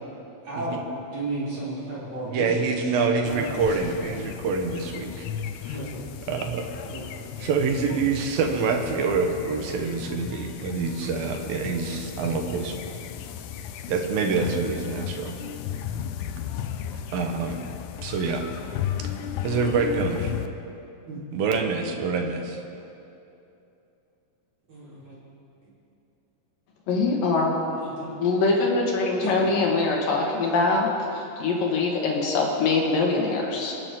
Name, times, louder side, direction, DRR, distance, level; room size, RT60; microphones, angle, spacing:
voice 1, 0.4-0.8 1.1-3.8 5.7-6.1 6.9-7.2 21.0-21.2 24.7-25.1 27.7-28.1 29.2-29.3, right 2 dB, 45° right, -9 dB, 5.2 m, -34 dB
voice 2, 2.3-5.1 5.7-5.8 6.3-6.7 7.4-12.8 13.9-15.4 17.1-17.6 18.0-18.4 19.4-20.3 21.3-22.6, right 4 dB, 75° right, 3 dB, 2.9 m, -26 dB
sound 1, 3.3-20.5, left 9 dB, 85° left, 1.7 m, -35 dB
voice 3, 26.9-27.5 28.1-33.7, left 3 dB, 70° left, -1 dB, 3.4 m, -23 dB
27.5 x 9.3 x 3.8 m, 2.8 s
omnidirectional pair, 4.3 m